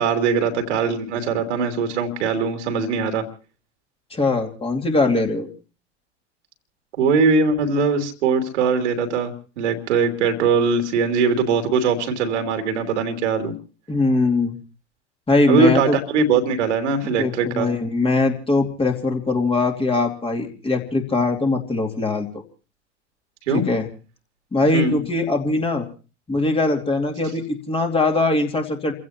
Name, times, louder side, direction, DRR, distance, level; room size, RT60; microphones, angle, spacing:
voice 1, 0.0-3.3 7.0-13.5 15.5-17.7 23.5-23.6 24.7-25.0, right 4 dB, 65° right, 6 dB, 2.8 m, -21 dB
voice 2, 4.1-5.5 13.9-14.5 15.3-16.0 17.0-22.4 23.5-23.9 24.5-25.8 26.3-28.9, left 3 dB, 15° left, 2 dB, 2.7 m, -21 dB
30.0 x 16.0 x 2.9 m, 0.36 s
figure-of-eight pair, 85°, 37 cm